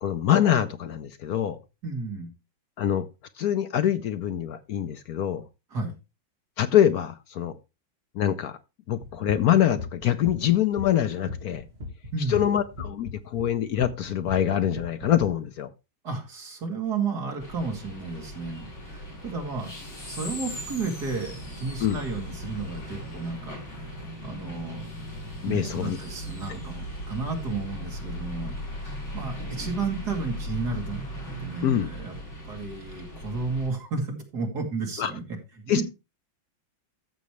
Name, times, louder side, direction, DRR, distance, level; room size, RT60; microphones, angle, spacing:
voice 1, 0.0-1.6 2.8-3.1 3.4-5.4 6.6-7.5 8.1-8.6 8.9-11.6 12.3-15.7 21.8-22.0 25.4-26.0 31.6-31.9 35.0-35.1 35.7-35.8, left 10 dB, 65° left, 1.0 m, -24 dB
voice 2, 1.8-2.3 5.7-5.9 12.1-12.6 16.0-19.7 20.1-24.9 25.4-31.0 31.4-32.1 32.4-35.2 35.6-35.8, right 4 dB, 50° right, 2.9 m, -32 dB
sound 1, 9.0-15.3, left 3 dB, 35° right, 1.9 m, -38 dB
sound 2, 17.4-33.7, equal, 85° left, 7.4 m, -38 dB
13.5 x 6.9 x 3.1 m
omnidirectional pair, 2.1 m